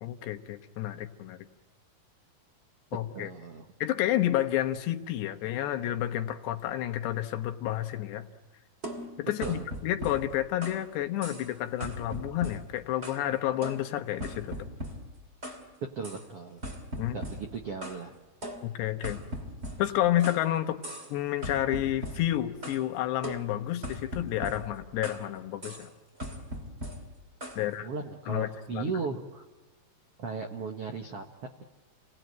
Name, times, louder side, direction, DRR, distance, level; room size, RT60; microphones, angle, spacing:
voice 1, 0.0-1.4 2.9-3.3 3.8-8.3 9.2-14.6 17.0-17.2 18.6-19.2 19.8-20.8 21.1-25.9 27.6-27.9 28.3-28.9, left 13 dB, 80° left, 7 dB, 3.4 m, -30 dB
voice 2, 3.1-3.6 9.4-9.6 15.9-16.6 17.1-18.2 27.6-29.4 30.2-31.3, right 5 dB, 90° right, 4 dB, 1.3 m, -36 dB
sound 1, 8.8-10.9 11.2-11.5 11.8-13.3 13.6-15.7 16.0-16.3 16.6-18.0 18.4-20.5 20.8-21.2 21.4-22.8 23.2-25.3 25.6-25.9 26.2-27.6, equal, 20° right, 2.0 m, -40 dB
30.0 x 18.5 x 9.2 m, 1.3 s
omnidirectional pair, 4.9 m